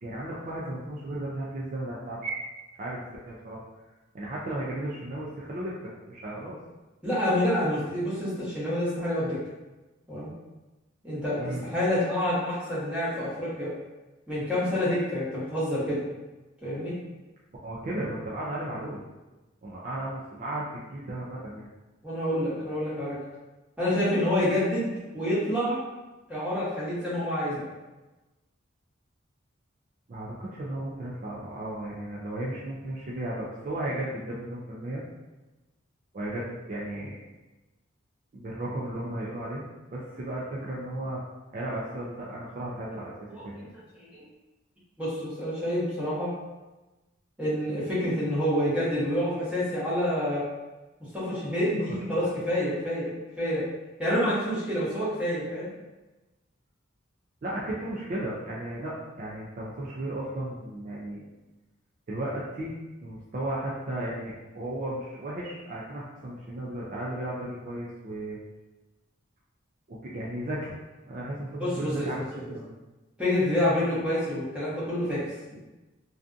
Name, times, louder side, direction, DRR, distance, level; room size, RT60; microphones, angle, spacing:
voice 1, 0.0-2.4 2.8-3.6 4.1-6.6 11.4-11.6 17.6-19.0 19.6-21.7 30.1-35.0 36.1-37.2 38.3-39.6 39.9-41.2 41.5-43.1 43.4-43.7 52.2-52.3 57.4-61.2 62.1-62.7 63.0-68.4 69.9-70.7 71.0-72.7, right 1 dB, 40° right, -6 dB, 0.4 m, -35 dB
voice 2, 7.0-9.4 10.1-10.3 11.0-13.7 14.3-16.0 16.6-16.9 22.0-23.2 23.8-24.9 25.1-25.8 26.3-27.7 43.3-43.7 44.0-44.1 45.0-46.3 47.4-50.5 51.1-53.1 53.4-53.6 54.0-55.7 71.6-72.2 73.2-75.2, left 1 dB, 5° right, -10 dB, 0.9 m, -27 dB
2.5 x 2.3 x 2.4 m, 1.1 s
head